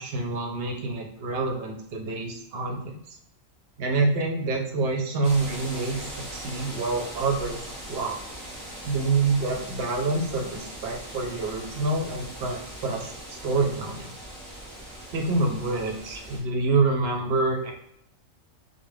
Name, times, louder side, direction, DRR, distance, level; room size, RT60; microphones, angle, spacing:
voice 1, 0.0-3.0 3.8-6.0 6.3-7.6 7.9-8.2 8.8-13.1 13.4-14.1 15.1-17.7, right 3 dB, 60° right, 1 dB, 0.7 m, -27 dB
sound 1, 5.2-16.4, right 1 dB, 15° right, 0.8 m, -40 dB
2.4 x 2.2 x 3.1 m, 0.72 s
omnidirectional pair, 1.4 m